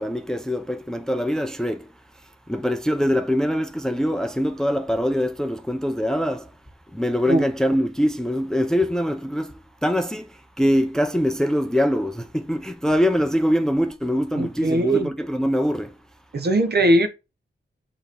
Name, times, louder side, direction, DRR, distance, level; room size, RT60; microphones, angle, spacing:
voice 1, 0.0-1.9 2.5-6.5 6.9-15.9, equal, 5° left, 0.4 m, -23 dB
voice 2, 14.4-15.1 16.3-17.1, right 1 dB, 55° right, 0.9 m, -20 dB
6.3 x 3.0 x 5.1 m
wide cardioid pair, 170°, 20 cm